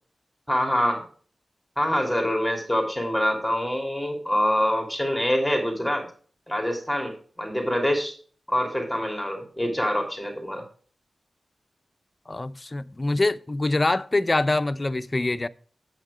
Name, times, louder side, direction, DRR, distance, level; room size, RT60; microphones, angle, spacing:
voice 1, 0.5-1.0 1.8-6.1 6.5-8.1 8.5-10.6, equal, ahead, 3.0 m, -25 dB
voice 2, 12.3-15.5, left 2 dB, 30° left, 0.5 m, -24 dB
8.6 x 8.1 x 5.0 m
wide cardioid pair, 75°, 0 cm